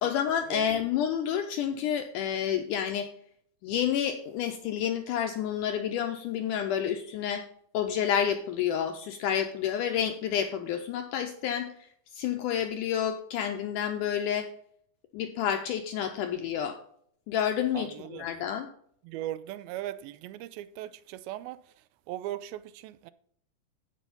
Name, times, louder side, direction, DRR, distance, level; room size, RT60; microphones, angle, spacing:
voice 1, 0.0-3.1 3.6-7.4 7.7-11.7 12.1-14.5 15.1-16.8 17.3-18.7, left 9 dB, 80° left, 1.9 m, -29 dB
voice 2, 17.7-18.3 19.0-21.6 22.1-23.1, right 13 dB, 90° right, 2.4 m, -38 dB
15.0 x 5.2 x 4.0 m
omnidirectional pair, 4.2 m